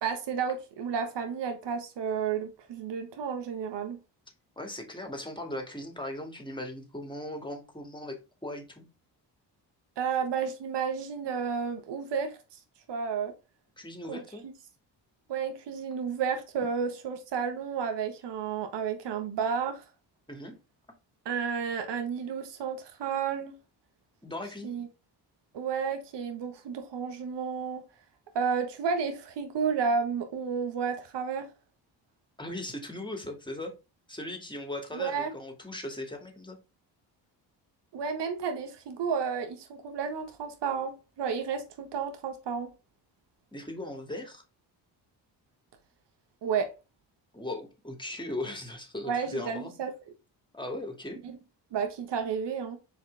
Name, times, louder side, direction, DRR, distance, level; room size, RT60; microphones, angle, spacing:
voice 1, 0.0-4.0 10.0-12.3 12.9-13.3 14.1-14.2 15.3-19.8 21.2-23.6 24.6-24.9 25.5-27.8 28.3-31.5 34.9-35.3 37.9-42.7 46.4-46.7 49.0-49.9 51.2-51.4 51.7-52.8, right 6 dB, 75° right, 1.6 m, -31 dB
voice 2, 4.6-8.8 13.8-14.5 20.3-20.5 24.2-24.7 32.4-33.7 34.1-36.6 43.5-44.4 47.3-49.7 50.5-51.2, left 1 dB, 10° left, 2.5 m, -38 dB
6.8 x 5.1 x 3.5 m
cardioid pair, 80°, 43 cm